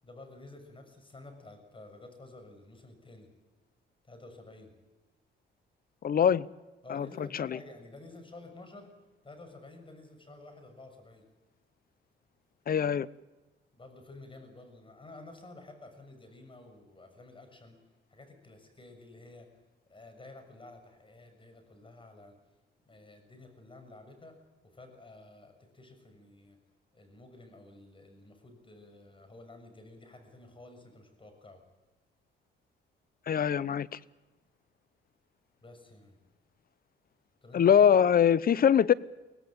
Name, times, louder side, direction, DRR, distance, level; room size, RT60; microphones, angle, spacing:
voice 1, 0.0-3.3 4.1-4.7 6.8-8.9 9.2-11.3 13.7-17.8 18.1-19.5 19.9-22.4 22.8-24.3 24.7-26.6 26.9-31.6 35.6-36.2 37.4-37.9, left 2 dB, 25° left, 6 dB, 6.7 m, -51 dB
voice 2, 6.0-6.5 6.9-7.6 12.7-13.1 33.3-33.9 37.5-38.9, left 8 dB, 50° left, 19 dB, 0.8 m, -23 dB
24.5 x 17.5 x 8.8 m, 1.2 s
cardioid pair, 90°, 20 cm